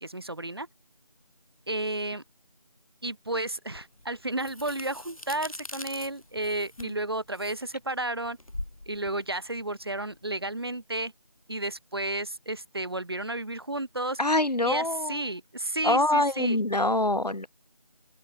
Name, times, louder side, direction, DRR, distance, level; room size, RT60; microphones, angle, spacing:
voice 1, 0.0-0.7 1.7-2.2 3.0-8.4 8.9-11.1 11.5-14.2 14.6-16.6, right 2 dB, 40° right, 1.2 m, -32 dB
sound 1, 3.7-10.5, left 1 dB, 60° left, 4.4 m, -43 dB
voice 2, 14.2-15.2 15.8-17.5, left 2 dB, 90° left, 1.2 m, -25 dB
open air
figure-of-eight pair, 170°, 20 cm